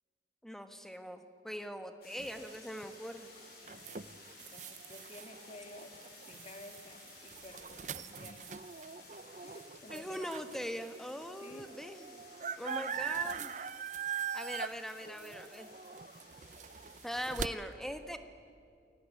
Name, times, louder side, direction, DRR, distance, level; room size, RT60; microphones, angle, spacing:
voice 1, 0.4-3.3 9.9-12.2 12.6-13.5 14.3-15.7 17.0-18.2, equal, ahead, 7 dB, 1.5 m, -41 dB
sound 1, 2.0-17.2, left 3 dB, 60° left, 7.5 m, -56 dB
sound 2, 2.2-10.7 11.2-11.3 11.5-17.5, right 7 dB, 45° right, 0.7 m, -42 dB
voice 2, 3.7-4.0 4.4-6.0 6.3-8.6 9.4-10.4 11.4-11.7 15.0-15.2, left 1 dB, 35° left, 5 dB, 2.7 m, -52 dB
29.0 x 20.0 x 10.0 m, 2.3 s
head